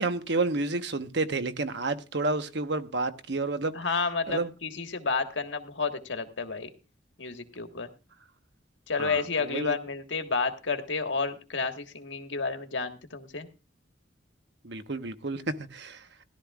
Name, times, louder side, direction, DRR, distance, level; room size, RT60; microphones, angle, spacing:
voice 1, 0.0-3.7 4.3-4.5 9.0-9.8 14.6-16.1, right 3 dB, 65° right, 1.1 m, -30 dB
voice 2, 3.7-6.7 7.2-7.9 8.9-13.5, left 4 dB, 80° left, 1.5 m, -31 dB
16.5 x 12.0 x 2.4 m
head